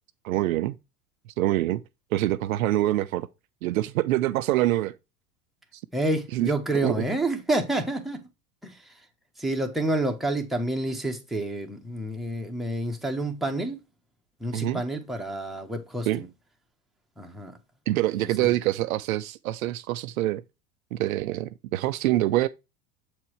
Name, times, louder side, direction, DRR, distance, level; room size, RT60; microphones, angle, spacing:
voice 1, 0.2-0.7 1.4-1.8 2.1-3.3 3.6-4.9 6.3-6.5 6.8-7.0 14.5-14.8 16.1-16.2 17.9-20.4 20.9-22.5, right 15 dB, 65° right, 0.6 m, -25 dB
voice 2, 5.9-8.2 8.6-8.8 9.4-13.8 14.4-16.3 17.2-17.6 18.2-18.6, right 1 dB, ahead, 1.3 m, -29 dB
7.6 x 4.5 x 3.1 m
hypercardioid pair, 85°, 44 cm